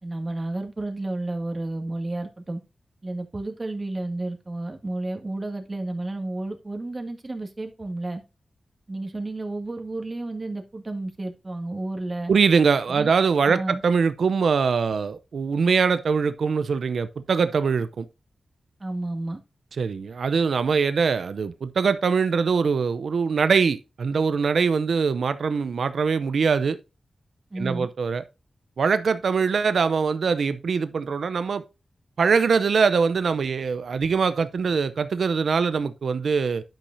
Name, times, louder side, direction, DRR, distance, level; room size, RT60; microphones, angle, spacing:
voice 1, 0.0-2.6 3.0-8.2 8.9-12.3 12.9-13.1 13.5-13.8 18.8-19.4 27.5-27.9, right 2 dB, 40° right, 2.0 m, -31 dB
voice 2, 12.3-18.1 19.8-26.8 27.6-28.2 28.8-31.6 32.2-36.6, right 5 dB, 80° right, 0.6 m, -22 dB
11.5 x 5.6 x 2.6 m
cardioid pair, 55°, 0 cm